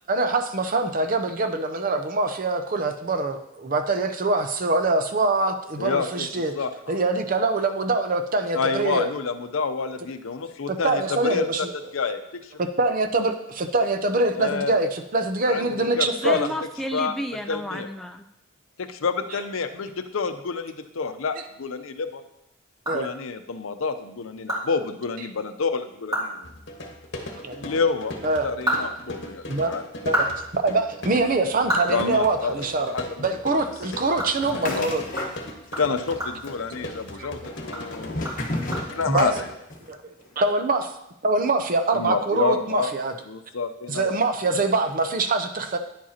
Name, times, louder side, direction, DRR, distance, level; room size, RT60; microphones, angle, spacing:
voice 1, 0.1-6.6 6.9-9.0 10.7-11.7 12.6-16.4 19.3-19.4 22.9-23.1 27.4-27.6 28.2-28.5 29.1-29.2 29.5-29.7 30.0-35.0 37.2-37.3 39.1-39.3 40.4-40.9 41.2-43.2 43.9-45.8, right 3 dB, 40° right, 7 dB, 0.6 m, -24 dB
voice 2, 5.8-6.3 6.5-7.0 8.5-11.5 11.9-12.4 14.3-14.8 15.5-15.7 16.0-16.5 16.9-17.1 17.5-17.9 18.8-22.2 22.9-26.5 27.6-28.1 28.4-29.8 31.9-32.5 32.9-33.1 34.5-34.9 35.8-38.3 38.9-39.3 41.9-42.9 43.3-44.1, left 5 dB, 80° left, 9 dB, 0.6 m, -28 dB
voice 3, 16.1-18.3, equal, ahead, 4 dB, 0.3 m, -32 dB
sound 1, 22.8-23.6 24.0-24.1 24.5-24.6 25.0-25.1 25.5-25.6 26.0-26.4 26.6-26.8 28.3-29.5 29.9-32.8 33.1-33.3 33.7-37.2 37.6-39.2, right 1 dB, 20° right, 2.4 m, -31 dB
sound 2, 26.4-39.5, left 1 dB, 60° left, 1.3 m, -39 dB
sound 3, 34.4-35.8 36.1-36.8 37.4-39.9, left 1 dB, 40° left, 1.2 m, -32 dB
10.0 x 7.5 x 2.9 m, 0.83 s
head